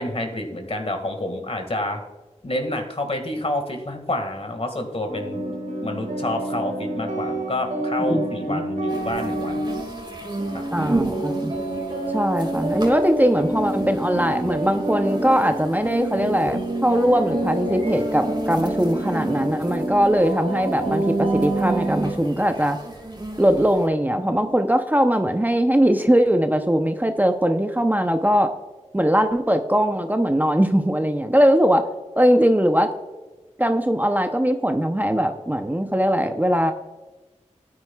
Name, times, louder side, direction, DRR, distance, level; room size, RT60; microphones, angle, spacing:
voice 1, 0.0-2.0 2.4-5.4 5.8-9.7 10.5-10.7, left 1 dB, 50° left, 4 dB, 1.9 m, -28 dB
sound 1, 5.1-22.1, right 1 dB, 80° right, 2.1 m, -28 dB
voice 2, 8.1-8.6 10.7-11.5 12.1-22.8 23.4-28.5 28.9-31.9 32.2-32.9 33.6-36.7, equal, 15° right, 6 dB, 0.7 m, -20 dB
sound 2, 8.9-23.9, right 2 dB, 35° right, 2.0 m, -35 dB
13.5 x 9.5 x 2.4 m, 1.2 s
wide cardioid pair, 45°, 13 cm